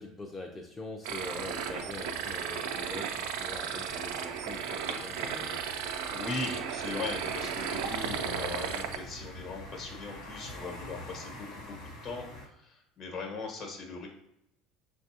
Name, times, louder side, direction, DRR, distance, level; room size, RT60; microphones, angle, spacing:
voice 1, 0.0-5.6, left 2 dB, 20° left, 0 dB, 0.5 m, -43 dB
sound 1, 1.0-9.0, right 7 dB, 80° right, 0.4 m, -35 dB
sound 2, 1.1-12.5, left 1 dB, 90° left, 1.2 m, -47 dB
voice 2, 6.1-11.7 12.0-14.1, left 3 dB, 50° left, 1 dB, 1.1 m, -39 dB
5.9 x 2.2 x 2.8 m, 0.80 s
supercardioid pair, 95°, 0 cm